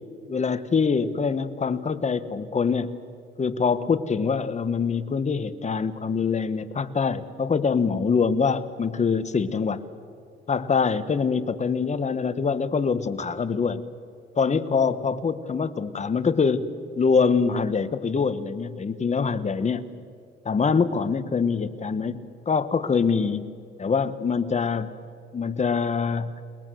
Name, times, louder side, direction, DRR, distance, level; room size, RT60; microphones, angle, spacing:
voice 1, 0.3-2.9 3.4-9.8 10.5-13.8 14.4-19.9 20.4-22.2 22.5-23.4 23.8-24.9 25.3-26.3, left 5 dB, 35° left, 11 dB, 1.5 m, -24 dB
29.0 x 21.0 x 7.9 m, 2.3 s
cardioid pair, 90°, 20 cm